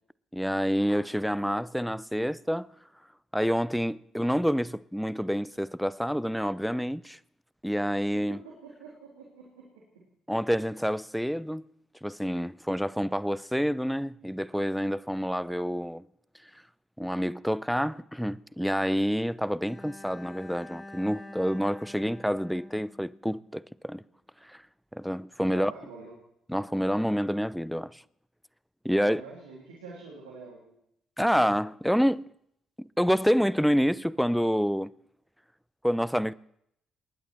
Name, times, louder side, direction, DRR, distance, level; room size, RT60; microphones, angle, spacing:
voice 1, 0.3-2.7 3.3-7.2 7.6-8.4 10.3-11.6 12.0-16.0 16.4-16.6 17.0-24.0 24.4-24.6 24.9-25.7 26.5-28.0 28.8-29.2 31.2-32.3 32.8-34.9 35.8-36.3, equal, ahead, 0.6 m, -28 dB
voice 2, 8.1-10.0 25.5-26.1 29.0-30.7, right 4 dB, 85° right, 3.0 m, -46 dB
Bowed string instrument, 19.6-23.7, left 1 dB, 20° left, 3.5 m, -47 dB
28.5 x 11.0 x 4.5 m
hypercardioid pair, 40°, 0 cm